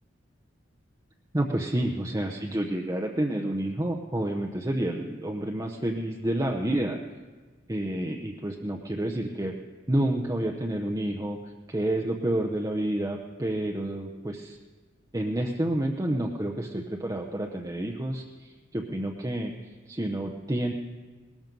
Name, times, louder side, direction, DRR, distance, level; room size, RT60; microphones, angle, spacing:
voice 1, 1.3-7.0 7.7-9.5 9.9-11.4 11.7-14.6 15.1-19.5 19.9-20.7, right 1 dB, 20° right, 1 dB, 0.7 m, -29 dB
19.0 x 13.5 x 5.3 m, 1.4 s
head